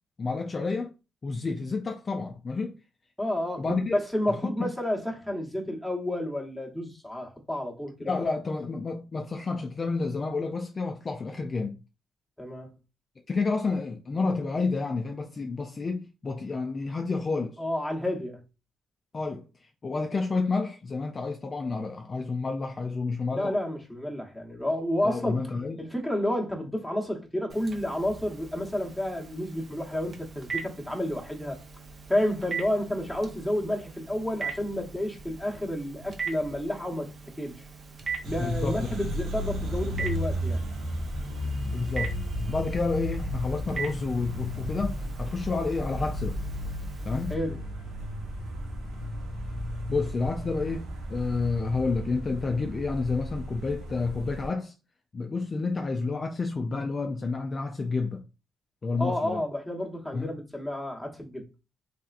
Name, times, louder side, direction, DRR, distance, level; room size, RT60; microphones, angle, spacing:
voice 1, 0.2-0.9 1.2-2.8 3.6-4.0 4.3-4.7 8.0-11.8 13.3-17.6 19.1-23.6 25.0-25.8 38.4-38.9 41.7-42.2 42.5-46.4 47.0-47.4 49.9-54.7 55.1-58.2 58.8-59.4 60.1-60.4, left 4 dB, 35° left, 0.3 m, -30 dB
voice 2, 3.2-8.2 12.4-12.7 17.6-18.4 23.3-25.4 25.8-31.6 32.1-37.1 37.4-37.7 38.2-40.6 47.3-47.6 59.0-61.5, left 1 dB, ahead, 0.9 m, -30 dB
Telephone, 27.5-47.3, right 5 dB, 45° right, 0.6 m, -41 dB
sound 1, 38.2-54.5, equal, 85° right, 1.0 m, -34 dB
3.3 x 2.7 x 2.4 m
cardioid pair, 90°, 0 cm